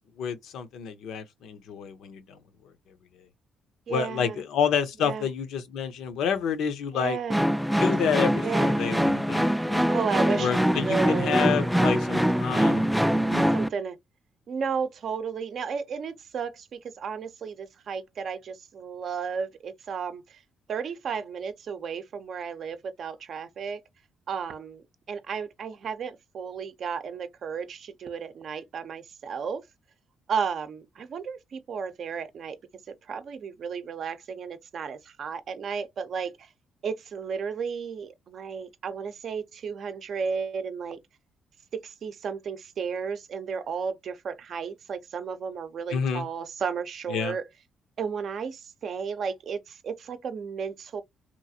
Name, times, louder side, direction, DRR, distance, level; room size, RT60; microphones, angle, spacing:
voice 1, 0.2-2.4 3.9-7.2 7.8-9.9 10.3-13.6 45.9-46.2 47.1-47.3, left 7 dB, 80° left, 0.6 m, -29 dB
voice 2, 3.9-4.4 5.0-5.2 6.9-7.4 8.4-8.8 9.9-11.4 13.5-14.0 14.5-20.4 20.7-23.8 24.3-29.6 30.3-32.6 32.9-36.5 36.8-41.0 41.7-47.4 48.0-51.0, right 6 dB, 60° right, 0.5 m, -33 dB
sound 1, 7.3-13.7, equal, ahead, 0.3 m, -23 dB
3.0 x 2.4 x 2.6 m
cardioid pair, 90°, 0 cm